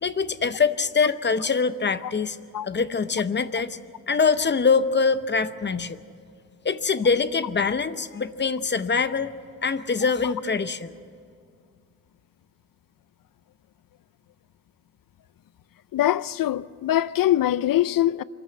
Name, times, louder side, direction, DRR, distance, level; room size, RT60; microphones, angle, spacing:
voice 1, 0.0-2.4 2.6-3.8 4.1-6.0 6.6-9.3 9.6-10.9, left 5 dB, 35° left, 0.7 m, -24 dB
voice 2, 15.9-18.2, left 13 dB, 85° left, 0.5 m, -23 dB
24.5 x 14.0 x 9.0 m
wide cardioid pair, 140°, 33 cm